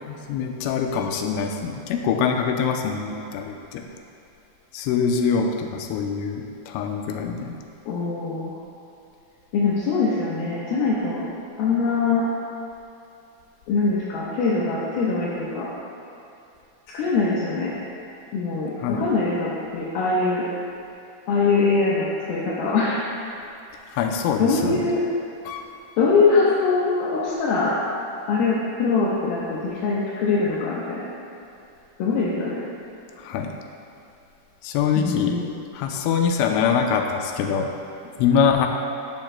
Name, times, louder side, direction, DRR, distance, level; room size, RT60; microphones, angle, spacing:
voice 1, 0.1-3.9 4.7-7.6 18.8-19.0 23.9-24.9 25.5-25.7 33.2-33.5 34.6-35.4 35.7-37.7 38.2-38.7, left 6 dB, 90° left, 3 dB, 3.2 m, -24 dB
voice 2, 7.9-8.6 9.5-11.3 11.6-12.2 13.7-15.7 16.9-17.8 18.3-20.5 21.3-23.0 24.4-25.0 26.0-27.8 28.3-31.1 32.0-32.6 35.0-35.5, left 4 dB, 70° left, -7 dB, 2.4 m, -23 dB
13.0 x 10.5 x 2.2 m, 2.8 s
omnidirectional pair, 5.5 m